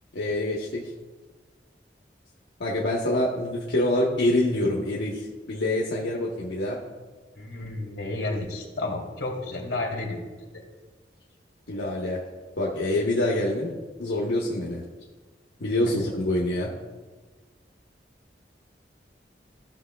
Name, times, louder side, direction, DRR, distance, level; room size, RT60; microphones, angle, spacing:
voice 1, 0.1-0.8 2.6-6.8 11.7-12.2 12.6-13.7 14.0-14.8 15.6-16.7, left 1 dB, 85° left, -4 dB, 1.0 m, -26 dB
voice 2, 7.3-10.2 10.5-10.6, left 2 dB, 65° left, -1 dB, 1.9 m, -31 dB
14.0 x 6.0 x 2.2 m, 1.3 s
head